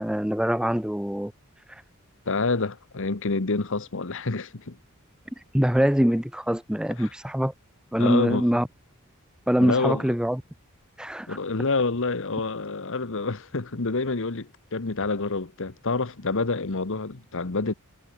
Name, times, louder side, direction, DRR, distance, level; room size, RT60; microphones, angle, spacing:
voice 1, 0.0-1.3 1.7-1.8 5.4-7.5 7.9-8.7 9.5-10.4 11.0-11.4, equal, 5° right, 0.7 m, -24 dB
voice 2, 2.3-4.8 7.0-7.1 8.0-8.4 9.6-10.1 11.3-17.7, left 3 dB, 65° left, 1.2 m, -27 dB
head